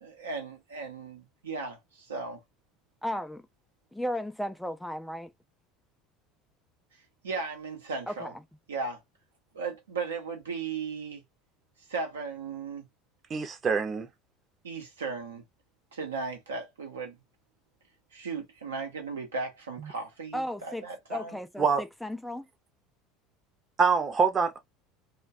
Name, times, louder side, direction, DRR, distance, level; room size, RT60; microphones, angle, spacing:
voice 1, 0.0-2.4 7.2-8.3 8.7-9.0 9.5-11.2 11.9-12.9 14.6-15.4 15.9-17.2 18.1-21.4, right 4 dB, 85° right, 0.7 m, -36 dB
voice 2, 3.0-3.5 3.9-5.3 8.1-8.4 20.3-22.5, equal, 5° left, 0.3 m, -35 dB
voice 3, 13.3-14.1 19.8-19.9 21.6-21.8 23.8-24.6, right 5 dB, 35° right, 0.7 m, -25 dB
2.2 x 2.2 x 2.5 m
hypercardioid pair, 75°, 0 cm